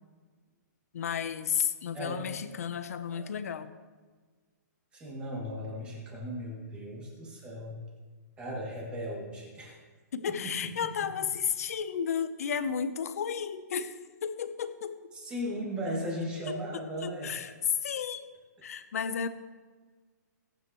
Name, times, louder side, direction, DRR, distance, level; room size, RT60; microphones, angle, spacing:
voice 1, 0.9-3.7 10.1-15.0 16.5-17.5 17.8-18.2 18.6-19.3, left 7 dB, 55° left, 11 dB, 0.9 m, -33 dB
voice 2, 1.9-2.4 3.1-3.2 4.9-7.8 8.4-9.8 10.4-10.5 10.8-10.9 15.1-17.4, equal, 10° right, -3 dB, 2.6 m, -37 dB
21.5 x 9.4 x 3.1 m, 1.4 s
hypercardioid pair, 175°, 10 cm